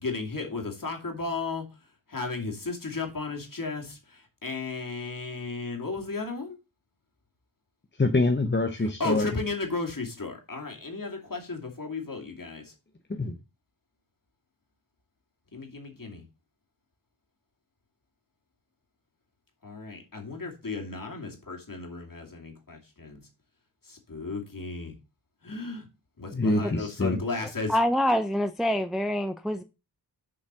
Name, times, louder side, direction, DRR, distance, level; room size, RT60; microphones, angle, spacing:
voice 1, 0.0-1.7 2.1-6.6 9.0-12.7 15.5-16.2 19.6-23.2 23.8-24.9 25.4-25.9 26.2-27.8, left 3 dB, 45° left, 2.7 m, -34 dB
voice 2, 7.9-9.4 13.1-13.4 26.3-27.2, left 2 dB, 25° left, 0.9 m, -25 dB
voice 3, 27.7-29.6, equal, ahead, 0.5 m, -25 dB
7.2 x 5.2 x 6.1 m
wide cardioid pair, 80°, 45 cm